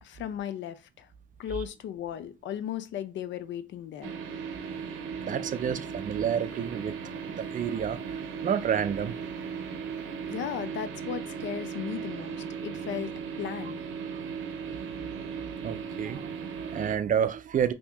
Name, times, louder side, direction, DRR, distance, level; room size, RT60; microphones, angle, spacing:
voice 1, 0.0-1.1 1.4-4.1 10.3-13.1 13.4-13.8, left 10 dB, 70° left, 0.5 m, -36 dB
sound 1, 4.0-17.0, right 6 dB, 85° right, 0.6 m, -37 dB
voice 2, 5.2-9.2 14.1-14.2 15.6-17.7, right 8 dB, 40° right, 0.4 m, -30 dB
2.7 x 2.7 x 3.4 m
cardioid pair, 90°, 20 cm